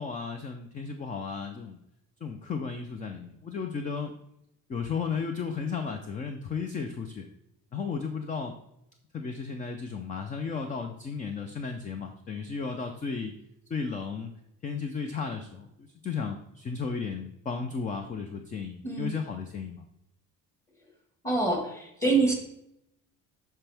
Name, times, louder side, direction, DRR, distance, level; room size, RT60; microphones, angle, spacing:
voice 1, 0.0-1.8 2.2-4.1 4.7-7.3 7.7-8.6 9.1-13.3 13.7-14.3 14.6-19.8, left 5 dB, 25° left, 6 dB, 0.5 m, -34 dB
voice 2, 18.8-19.1 21.2-22.3, right 3 dB, 10° left, 2 dB, 1.6 m, -26 dB
12.0 x 4.5 x 3.4 m, 0.81 s
cardioid pair, 165°, 32 cm